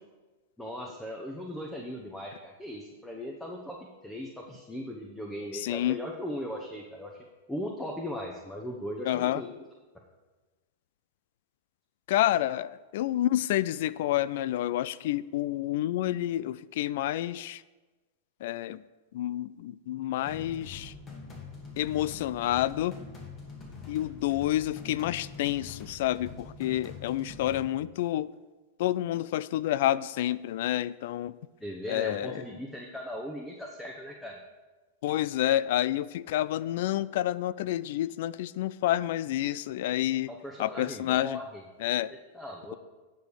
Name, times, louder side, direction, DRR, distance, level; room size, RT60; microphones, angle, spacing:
voice 1, 0.6-3.8 4.0-7.2 7.5-9.5 31.6-34.4 40.3-41.6 42.3-42.8, equal, 5° left, 0 dB, 1.0 m, -38 dB
voice 2, 5.5-6.0 9.0-9.4 12.1-17.6 18.4-18.8 19.1-20.9 21.8-23.0 23.9-28.3 28.8-31.4 31.9-32.4 35.0-40.3 40.6-41.4 41.8-42.1, left 13 dB, 60° left, 18 dB, 0.3 m, -29 dB
sound 1, 20.3-27.6, left 4 dB, 30° left, 2.5 m, -44 dB
9.3 x 5.2 x 6.4 m, 1.2 s
hypercardioid pair, 105°, 0 cm